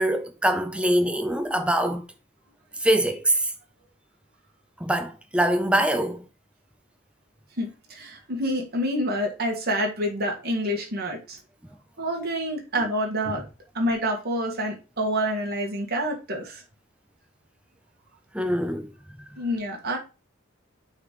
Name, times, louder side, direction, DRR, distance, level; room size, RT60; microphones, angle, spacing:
voice 1, 0.0-2.0 2.8-3.5 4.8-6.2 18.3-18.9, right 1 dB, 5° right, 0.7 m, -23 dB
voice 2, 7.6-11.4 12.0-13.4 13.7-16.6 19.4-20.0, equal, 50° right, 1.8 m, -27 dB
8.8 x 4.1 x 3.1 m
head